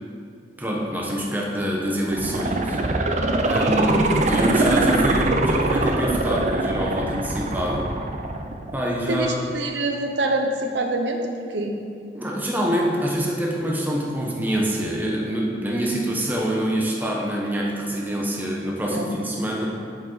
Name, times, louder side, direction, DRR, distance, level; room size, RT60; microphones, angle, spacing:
voice 1, 0.6-2.8 3.5-7.9 8.7-9.5 12.1-19.7, equal, 10° right, -3 dB, 1.1 m, -25 dB
sound 1, 2.1-9.1 9.5-9.6, right 2 dB, 40° right, 0.6 m, -22 dB
voice 2, 9.1-11.2 11.5-11.8 18.9-19.1, right 2 dB, 90° right, 3 dB, 0.9 m, -25 dB
7.6 x 7.4 x 4.1 m, 2.3 s
head